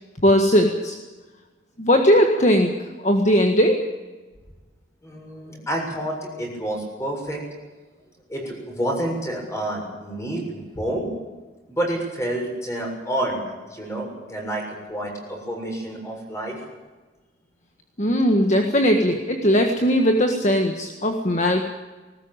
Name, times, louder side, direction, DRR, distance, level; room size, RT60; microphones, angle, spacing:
voice 1, 0.2-1.0 1.8-2.7 3.0-3.8 18.0-21.6, equal, 40° left, 4 dB, 1.7 m, -18 dB
voice 2, 5.0-7.5 8.3-11.1 11.7-16.6, right 1 dB, 15° left, 0 dB, 7.1 m, -29 dB
20.5 x 19.0 x 9.1 m, 1.2 s
head